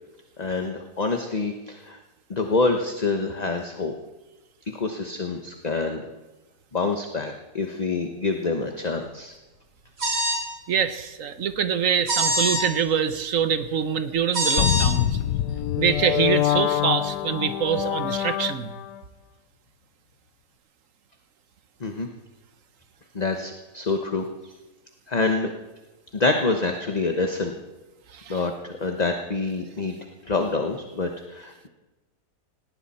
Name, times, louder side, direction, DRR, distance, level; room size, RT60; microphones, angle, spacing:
voice 1, 0.4-2.0 2.3-3.9 4.8-6.1 6.7-9.3 21.8-22.1 23.1-24.3 25.1-25.5 26.1-27.5 28.3-29.9 30.3-31.7, left 3 dB, 30° left, 4 dB, 1.1 m, -26 dB
sound 1, 10.0-10.4 12.1-12.6 14.3-14.9, right 1 dB, 85° right, 4.2 m, -23 dB
voice 2, 10.7-15.2 15.8-18.7 28.1-28.4, right 7 dB, 55° right, 11 dB, 1.2 m, -25 dB
sound 2, 14.6-19.0, left 12 dB, 80° left, 1.3 m, -25 dB
18.5 x 18.5 x 4.3 m, 1.1 s
omnidirectional pair, 1.8 m